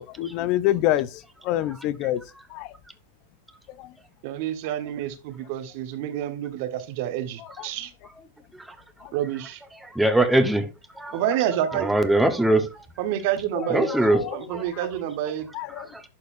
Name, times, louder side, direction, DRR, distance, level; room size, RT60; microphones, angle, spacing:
voice 1, 0.0-2.2 2.5-2.7 3.8-3.9 7.4-7.7 9.0-9.1 13.5-14.4 14.7-14.9 15.5-15.9, left 13 dB, 50° left, 0.4 m, -27 dB
voice 2, 4.2-7.9 9.1-9.6 11.1-11.9 13.0-13.9 14.3-15.5, right 11 dB, 55° right, 1.1 m, -28 dB
voice 3, 9.8-10.7 11.0-11.2 11.7-12.7 13.7-14.2 14.5-14.6 15.8-15.9, right 1 dB, 5° right, 1.1 m, -21 dB
11.5 x 4.1 x 2.6 m
hypercardioid pair, 115°, 0 cm